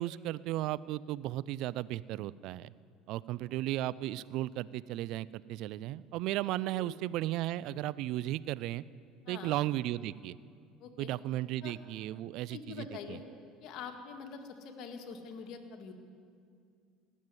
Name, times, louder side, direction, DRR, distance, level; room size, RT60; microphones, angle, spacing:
voice 1, 0.0-2.7 3.1-8.8 9.3-10.4 11.0-13.2, right 15 dB, 65° right, 19 dB, 0.4 m, -35 dB
voice 2, 9.3-9.6 10.8-11.1 11.6-11.7 12.5-13.2 13.6-15.9, left 6 dB, 60° left, 4 dB, 1.9 m, -45 dB
18.0 x 7.4 x 9.7 m, 2.2 s
hypercardioid pair, 75°, 0 cm